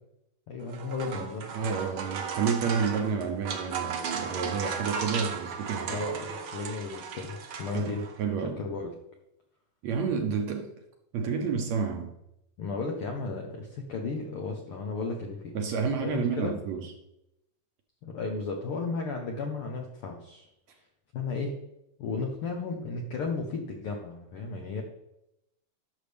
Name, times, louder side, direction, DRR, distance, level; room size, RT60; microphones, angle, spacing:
voice 1, 0.5-1.5 5.9-8.0 8.6-8.9 12.6-15.6 16.0-16.6 18.0-20.8 21.1-21.5 22.0-24.8, left 4 dB, 75° left, 2 dB, 1.3 m, -34 dB
sound 1, 0.6-8.2, right 6 dB, 85° right, 1.1 m, -36 dB
voice 2, 1.5-6.0 7.7-8.6 9.8-10.7 11.1-12.1 15.5-16.8, right 6 dB, 70° right, 3 dB, 1.8 m, -30 dB
11.5 x 6.5 x 3.4 m, 0.84 s
omnidirectional pair, 3.8 m